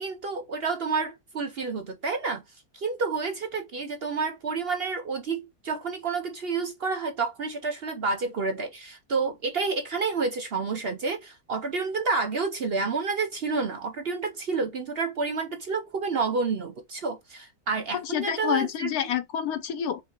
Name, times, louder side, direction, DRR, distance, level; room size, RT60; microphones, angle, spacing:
voice 1, 0.0-2.4 2.7-19.1, right 4 dB, 50° right, 0.8 m, -29 dB
voice 2, 18.1-20.0, left 9 dB, 75° left, 1.2 m, -28 dB
5.1 x 2.2 x 4.3 m
omnidirectional pair, 1.6 m